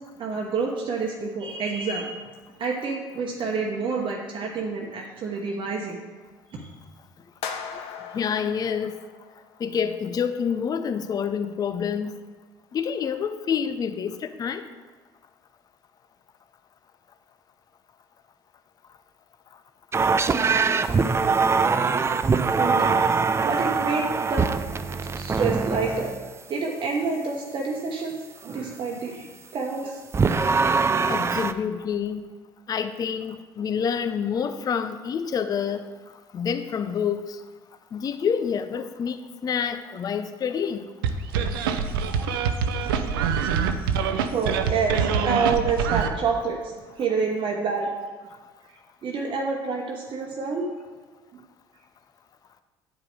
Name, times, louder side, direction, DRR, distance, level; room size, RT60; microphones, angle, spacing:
voice 1, 0.2-2.2 2.6-6.0 6.5-6.7 22.5-23.0 23.4-24.5 25.1-28.2 28.4-30.0 44.3-47.9 49.0-50.7, right 4 dB, 45° right, -1 dB, 1.0 m, -28 dB
sound 1, 7.4-9.7, left 6 dB, 55° left, 0.8 m, -38 dB
voice 2, 8.1-9.0 9.6-12.1 12.7-14.6 31.1-32.2 32.7-35.8 36.3-37.4 37.9-40.9, left 7 dB, 35° left, 10 dB, 0.5 m, -27 dB
sound 2, 19.9-26.2 30.1-31.5, right 5 dB, 20° right, 0.4 m, -23 dB
sound 3, 41.0-46.1, right 6 dB, 75° right, 0.5 m, -24 dB
8.9 x 4.9 x 4.7 m, 1.4 s
hypercardioid pair, 60°, 12 cm